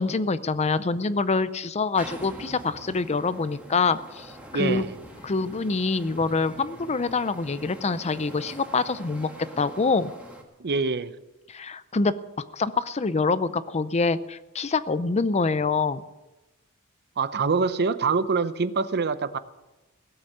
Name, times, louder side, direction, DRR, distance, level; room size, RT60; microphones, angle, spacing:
voice 1, 0.0-4.8 5.2-10.1 11.5-12.1 12.5-16.0, left 4 dB, 30° left, 15 dB, 0.5 m, -25 dB
sound 1, 2.0-10.4, right 1 dB, 5° right, 2.0 m, -44 dB
voice 2, 4.5-4.9 10.6-11.1 17.2-19.4, right 4 dB, 50° right, 14 dB, 0.7 m, -25 dB
17.0 x 8.0 x 8.6 m, 1.0 s
head